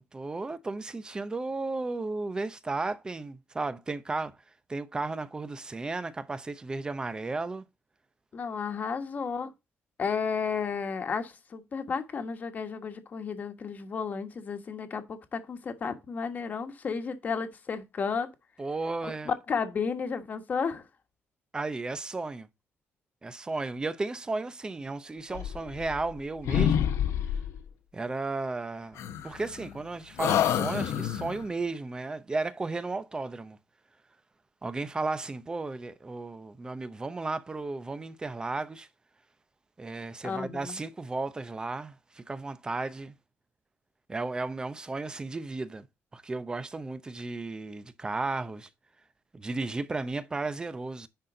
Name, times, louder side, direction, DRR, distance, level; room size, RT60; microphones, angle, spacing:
voice 1, 0.1-4.4 4.7-7.6 18.6-19.3 21.5-22.5 23.2-26.9 27.9-33.6 34.6-38.9 39.8-43.2 44.1-45.9 46.1-48.7 49.3-51.1, right 3 dB, 15° right, 0.7 m, -34 dB
voice 2, 8.3-9.5 10.0-18.3 19.0-20.8 40.2-40.8, left 5 dB, 35° left, 1.4 m, -33 dB
sound 1, 25.3-26.2 26.5-27.6 29.0-29.8 30.2-31.4, left 9 dB, 90° left, 1.0 m, -28 dB
10.5 x 4.3 x 3.9 m
cardioid pair, 155°, 5 cm